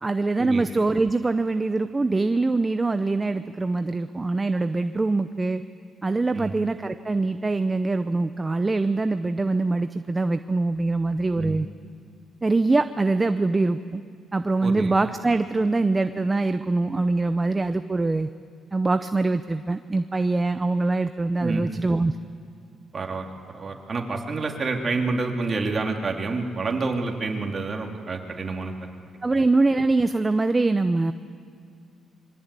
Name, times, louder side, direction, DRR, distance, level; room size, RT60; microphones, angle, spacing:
voice 1, 0.0-5.6 6.0-11.7 12.4-14.0 14.3-18.3 18.7-22.1 29.2-31.1, right 3 dB, 20° right, 10 dB, 0.7 m, -23 dB
voice 2, 14.6-14.9 21.4-21.7 22.9-28.7, right 3 dB, 40° right, 2 dB, 3.0 m, -28 dB
26.0 x 23.0 x 8.3 m, 2.2 s
cardioid pair, 90°, 0 cm